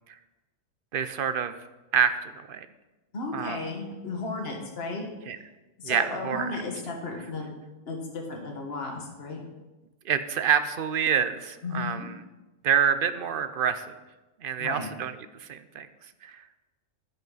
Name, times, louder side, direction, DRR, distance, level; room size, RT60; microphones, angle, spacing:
voice 1, 0.9-1.6 1.9-2.7 3.3-3.6 5.3-5.4 5.8-6.5 10.0-12.1 12.6-14.0 14.4-15.1 15.4-15.9 16.2-16.4, right 7 dB, 55° right, 11 dB, 0.7 m, -27 dB
voice 2, 3.1-5.1 5.8-9.4 11.6-12.1 14.6-14.9, left 3 dB, 50° left, 1 dB, 1.8 m, -34 dB
11.0 x 10.5 x 4.0 m, 1.1 s
omnidirectional pair, 1.4 m